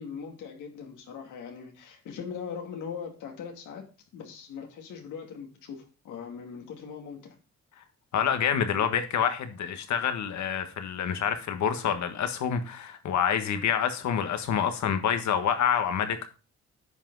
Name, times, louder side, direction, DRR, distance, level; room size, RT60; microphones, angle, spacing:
voice 1, 0.0-3.8 4.1-7.4, left 6 dB, 85° left, 2.6 m, -40 dB
voice 2, 8.1-16.3, left 8 dB, 70° left, 1.6 m, -27 dB
10.0 x 5.8 x 4.0 m
cardioid pair, 90°, 30 cm